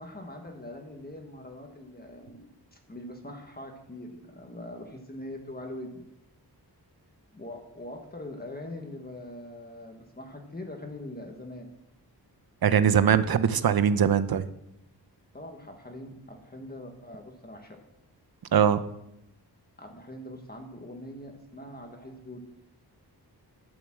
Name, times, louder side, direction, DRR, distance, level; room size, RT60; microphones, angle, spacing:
voice 1, 0.0-6.0 7.3-11.7 15.3-17.8 19.8-22.4, left 1 dB, 25° left, 3 dB, 1.5 m, -42 dB
voice 2, 12.6-14.4 18.5-18.8, right 8 dB, 65° right, 13 dB, 0.8 m, -21 dB
12.0 x 7.2 x 7.5 m, 0.83 s
wide cardioid pair, 165°, 40 cm